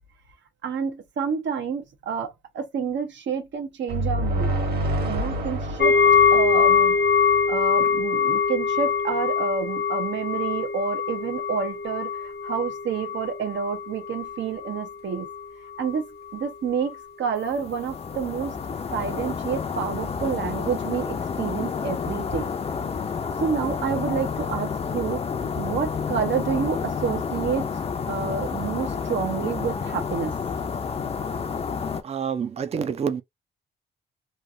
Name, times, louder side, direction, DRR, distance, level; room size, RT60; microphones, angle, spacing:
voice 1, 0.6-4.5 5.1-6.0 6.3-7.0 7.5-15.3 15.8-16.0 16.3-18.6 18.9-22.5 23.4-25.2 25.6-27.7 28.1-30.3, right 6 dB, 75° right, 1.0 m, -29 dB
sound 1, 3.9-7.6, right 1 dB, 55° right, 1.5 m, -28 dB
sound 2, 5.8-14.9 15.2-15.4 15.9-16.0, left 6 dB, 60° left, 0.9 m, -23 dB
sound 3, 17.5-32.0, left 6 dB, 30° left, 0.5 m, -30 dB
voice 2, 32.0-33.2, right 7 dB, 35° right, 0.5 m, -27 dB
3.2 x 2.5 x 2.6 m
wide cardioid pair, 145°, 19 cm